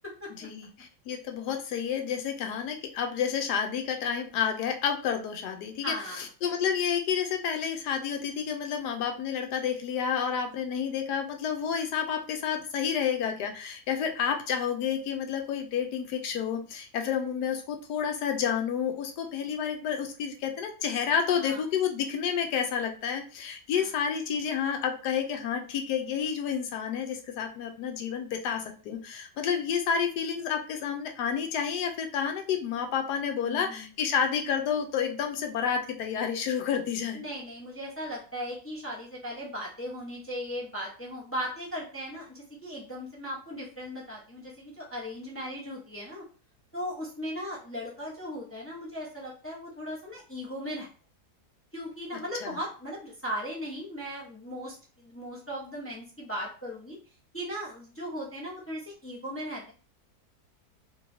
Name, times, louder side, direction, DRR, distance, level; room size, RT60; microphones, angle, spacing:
voice 1, 0.4-37.2 52.4-52.6, left 7 dB, 85° left, 4 dB, 1.2 m, -30 dB
voice 2, 5.8-6.3 21.3-21.6 23.8-23.9 33.4-33.9 37.1-46.2 46.7-50.9 51.7-57.0 57.3-59.7, equal, 15° left, -5 dB, 0.5 m, -37 dB
3.1 x 3.0 x 2.6 m, 0.38 s
omnidirectional pair, 1.7 m